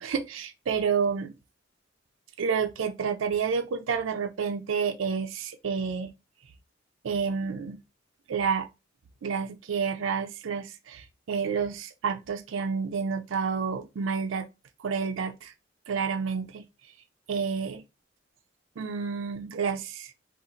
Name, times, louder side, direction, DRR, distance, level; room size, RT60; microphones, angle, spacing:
voice 1, 0.0-1.3 2.4-6.1 7.0-7.8 8.3-8.7 9.2-14.5 14.8-15.5 15.9-16.6 17.3-17.8 18.8-20.1, right 6 dB, 80° right, 0.4 m, -29 dB
2.6 x 2.4 x 3.8 m
head